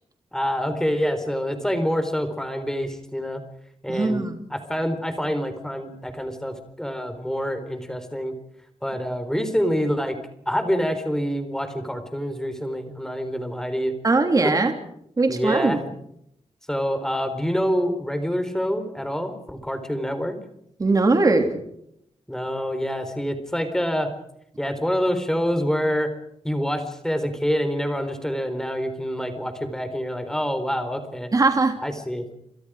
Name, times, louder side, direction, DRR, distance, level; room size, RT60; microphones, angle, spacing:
voice 1, 0.3-3.4 3.8-4.2 4.5-8.3 8.8-10.2 10.5-13.9 14.4-14.5 15.3-15.8 16.7-20.4 22.3-24.1 24.6-26.1 26.4-31.3 31.8-32.3, equal, 5° left, 8 dB, 4.1 m, -26 dB
voice 2, 3.9-4.3 14.0-14.7 15.2-15.8 20.8-21.6 31.3-31.8, right 3 dB, 30° right, 5 dB, 3.2 m, -20 dB
29.0 x 28.5 x 5.0 m, 0.75 s
wide cardioid pair, 165°, 11 cm